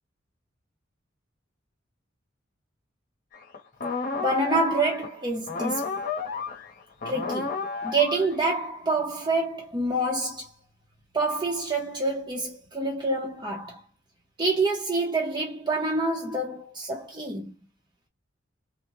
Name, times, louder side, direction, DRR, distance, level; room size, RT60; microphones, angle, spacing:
sound 1, 3.3-5.2 5.5-8.6, left 4 dB, 45° left, 0.8 m, -32 dB
voice 1, 4.2-5.9 7.0-10.5 11.1-13.8 14.4-17.5, right 2 dB, 25° right, 0.7 m, -27 dB
3.6 x 2.1 x 2.9 m
head